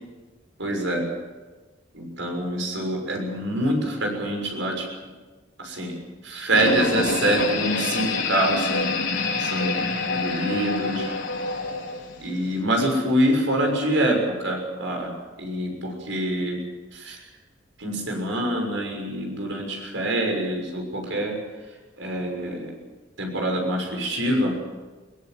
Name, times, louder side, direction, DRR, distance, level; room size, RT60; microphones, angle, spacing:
voice 1, 0.6-1.0 1.9-4.9 5.6-5.9 6.2-8.9 9.4-9.8 10.1-11.1 12.2-16.6 16.9-17.2 17.8-21.3 22.0-22.8 23.2-24.5, right 1 dB, 75° right, 2 dB, 6.5 m, -25 dB
sound 1, 6.5-12.6, left 3 dB, 75° left, 4.4 m, -27 dB
22.0 x 18.5 x 7.8 m, 1.3 s
head